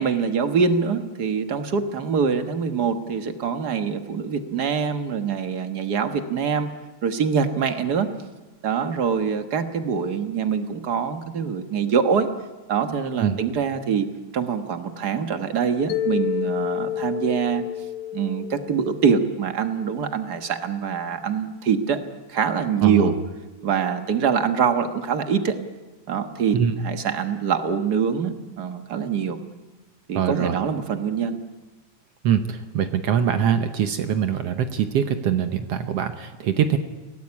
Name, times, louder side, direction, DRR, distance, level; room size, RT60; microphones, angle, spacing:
voice 1, 0.0-6.7 7.0-8.1 8.6-12.3 12.7-14.1 14.3-17.6 18.1-22.0 22.3-23.1 23.6-25.6 26.1-29.4 30.1-31.4, right 6 dB, 45° right, 8 dB, 1.3 m, -24 dB
Mallet percussion, 15.9-20.0, left 11 dB, 60° left, 1.7 m, -30 dB
voice 2, 22.8-23.1 26.5-26.7 30.2-30.6 32.2-36.8, right 8 dB, 65° right, 9 dB, 1.7 m, -23 dB
22.5 x 17.5 x 9.7 m, 1.2 s
omnidirectional pair, 3.5 m